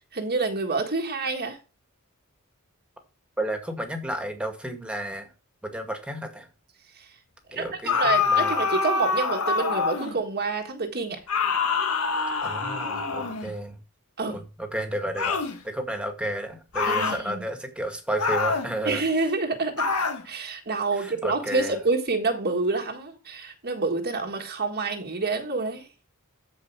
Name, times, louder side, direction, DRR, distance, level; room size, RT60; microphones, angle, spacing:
voice 1, 0.1-1.6 7.0-7.1 7.5-7.7 7.9-11.2 14.2-14.4 16.9-17.4 18.8-19.9 20.2-25.9, right 3 dB, 45° right, 1.6 m, -27 dB
voice 2, 3.4-5.3 5.6-6.5 7.5-8.5 12.4-13.8 14.3-19.0 21.0-21.8, right 1 dB, 5° right, 2.0 m, -32 dB
sound 1, 7.8-10.2 11.3-13.5 15.2-15.6 16.7-17.2 18.2-18.7 19.8-20.2, left 5 dB, 80° left, 1.7 m, -25 dB
14.0 x 5.0 x 4.7 m
head